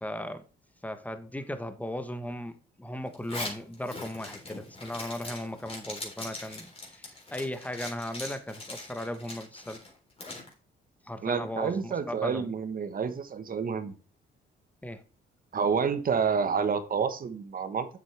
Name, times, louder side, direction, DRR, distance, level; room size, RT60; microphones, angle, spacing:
voice 1, 0.0-0.5 0.8-9.8 11.0-12.5 14.8-15.0, left 1 dB, 5° left, 1.1 m, -37 dB
Zipper (clothing), 3.1-10.5, left 2 dB, 30° left, 3.7 m, -41 dB
voice 2, 11.2-13.9 15.5-17.9, right 6 dB, 45° right, 1.3 m, -29 dB
7.6 x 7.5 x 3.4 m
cardioid pair, 90°, 20 cm